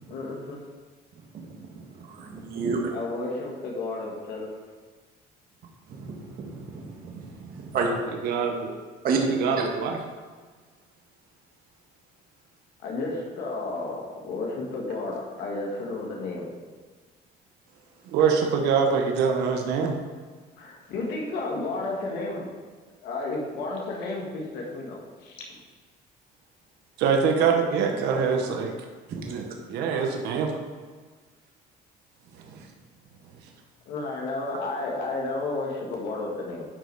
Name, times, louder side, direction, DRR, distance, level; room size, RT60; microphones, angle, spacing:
voice 1, 0.1-0.6 2.9-4.5 12.8-16.5 20.6-22.5 23.0-25.6 33.8-36.7, left 2 dB, 85° left, -2 dB, 1.8 m, -32 dB
voice 2, 1.7-2.8 5.9-7.9 9.0-9.2 9.6-9.7 29.1-29.3, right 5 dB, 60° right, 0 dB, 1.8 m, -31 dB
voice 3, 8.2-8.7 9.4-10.0 18.1-19.9 27.0-28.7 29.3-30.5 32.4-32.6, right 6 dB, 90° right, 2 dB, 1.1 m, -24 dB
11.0 x 5.3 x 4.8 m, 1.5 s
cardioid pair, 110°, 17 cm